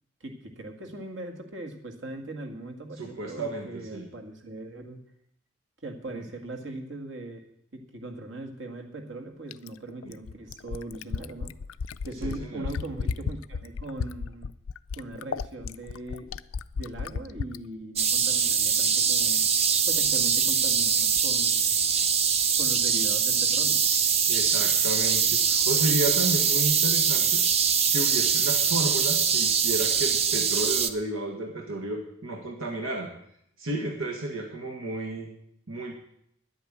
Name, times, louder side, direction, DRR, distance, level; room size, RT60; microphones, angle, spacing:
voice 1, 0.2-5.0 5.8-7.4 7.7-11.5 12.1-14.5 15.0-16.3 16.7-19.5 19.9-21.7 22.6-23.8, right 2 dB, 65° right, 4 dB, 2.0 m, -39 dB
voice 2, 3.0-4.1 6.1-6.2 10.0-10.1 12.2-12.7 24.3-27.4 27.9-33.1 33.6-35.3 35.7-35.9, right 2 dB, 90° right, 1 dB, 1.8 m, -32 dB
Fill (with liquid), 9.5-17.6 18.9-19.0, left 5 dB, 90° left, 0.4 m, -33 dB
sound 1, 18.0-30.9, right 7 dB, 30° right, 0.6 m, -23 dB
10.5 x 8.8 x 8.7 m, 0.72 s
head